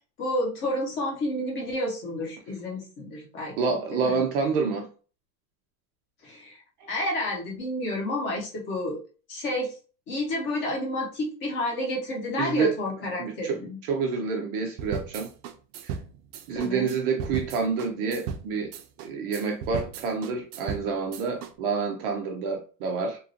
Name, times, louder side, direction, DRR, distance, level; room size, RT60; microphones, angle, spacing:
voice 1, 0.2-4.2 6.2-6.6 6.9-9.0 9.3-9.8 10.1-13.8 16.5-16.9, left 1 dB, 25° left, 0.7 m, -30 dB
voice 2, 3.6-4.9 6.8-6.9 12.4-12.8 13.2-13.6 13.9-15.3 15.8-16.0 16.5-18.7 19.0-23.2, right 5 dB, 40° right, 0.4 m, -28 dB
sound 1, 14.8-21.5, right 6 dB, 85° right, 0.6 m, -36 dB
2.9 x 2.5 x 2.6 m
supercardioid pair, 170°, 43 cm